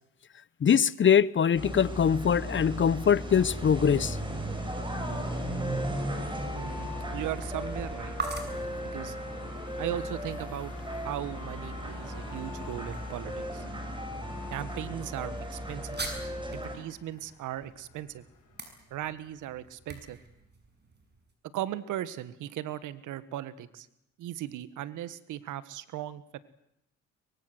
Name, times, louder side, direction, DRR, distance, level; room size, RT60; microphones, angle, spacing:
voice 1, 0.6-4.2, left 8 dB, 40° left, 0.8 m, -23 dB
sound 1, 1.5-16.8, equal, 15° right, 7.1 m, -36 dB
sound 2, 3.6-21.3, right 3 dB, 35° right, 6.5 m, -46 dB
sound 3, 4.9-19.7, left 6 dB, 85° left, 6.7 m, -53 dB
voice 2, 6.5-8.2 8.9-9.2 9.8-13.6 14.5-16.0 16.5-18.2 18.9-20.2 21.5-23.9 24.2-26.4, right 12 dB, 90° right, 1.6 m, -37 dB
23.5 x 23.0 x 8.0 m
cardioid pair, 90°, 30 cm